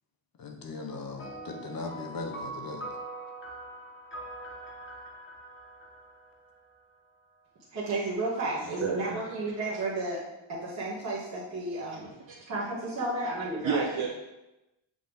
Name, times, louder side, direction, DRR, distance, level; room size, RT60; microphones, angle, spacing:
voice 1, 0.4-2.8, left 3 dB, 45° left, 3 dB, 0.9 m, -38 dB
sound 1, 1.2-7.0, right 1 dB, 25° left, 1.0 m, -43 dB
voice 2, 7.7-10.2 10.5-12.1 12.5-13.9, right 2 dB, 35° right, -11 dB, 1.7 m, -32 dB
voice 3, 8.6-9.4 12.0-12.5 13.6-14.1, right 6 dB, 70° right, -1 dB, 1.0 m, -32 dB
8.1 x 3.8 x 3.5 m, 0.98 s
wide cardioid pair, 155°, 47 cm